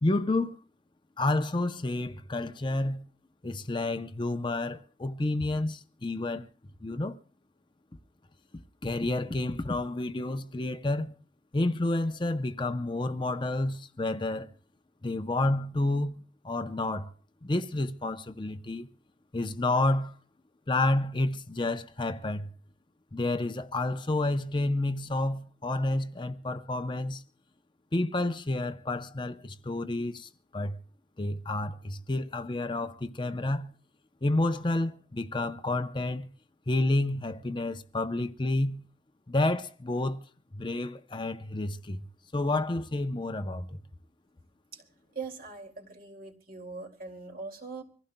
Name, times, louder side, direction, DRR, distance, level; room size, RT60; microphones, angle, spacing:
voice 1, 0.0-0.6 1.2-3.0 3.4-6.5 6.8-7.2 8.8-11.2 11.5-14.5 15.0-17.1 17.4-18.9 19.3-20.2 20.7-22.5 23.1-27.2 27.9-30.8 31.2-33.7 34.2-36.3 36.7-38.8 39.3-40.2 40.5-42.1 42.3-43.8, left 2 dB, 25° left, 0.6 m, -30 dB
voice 2, 45.1-47.8, right 4 dB, 50° right, 2.3 m, -41 dB
25.5 x 15.5 x 2.2 m
head